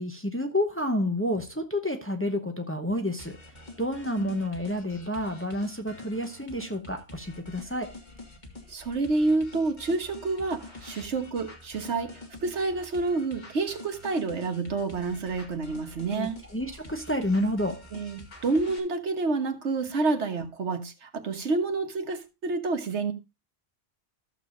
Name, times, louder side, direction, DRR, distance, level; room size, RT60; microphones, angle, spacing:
voice 1, 0.0-3.4 3.8-8.0 16.1-17.8, left 1 dB, 10° left, 0.9 m, -29 dB
sound 1, 3.2-18.8, left 2 dB, 40° left, 1.9 m, -46 dB
voice 2, 8.7-16.4 17.9-23.1, right 3 dB, 80° right, 1.5 m, -29 dB
14.0 x 6.9 x 2.5 m
omnidirectional pair, 1.2 m